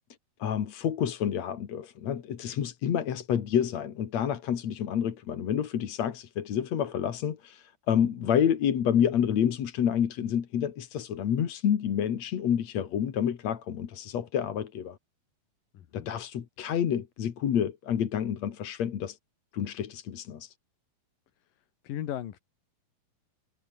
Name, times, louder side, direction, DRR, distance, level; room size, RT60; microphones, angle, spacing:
voice 1, 0.4-15.0 15.9-19.2 19.5-20.5, left 9 dB, 55° left, 2.7 m, -28 dB
voice 2, 15.7-16.1 21.4-22.4, left 11 dB, 70° left, 3.2 m, -38 dB
omnidirectional pair, 4.3 m